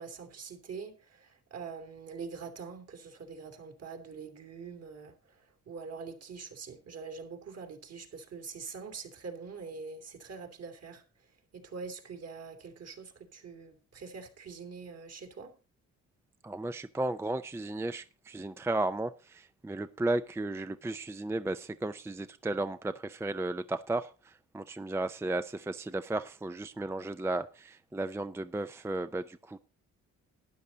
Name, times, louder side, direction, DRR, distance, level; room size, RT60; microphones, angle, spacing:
voice 1, 0.0-11.0 11.5-15.6, right 5 dB, 55° right, 2.8 m, -44 dB
voice 2, 16.4-29.6, right 2 dB, 10° right, 0.5 m, -34 dB
12.5 x 10.0 x 4.0 m
cardioid pair, 90°, 30 cm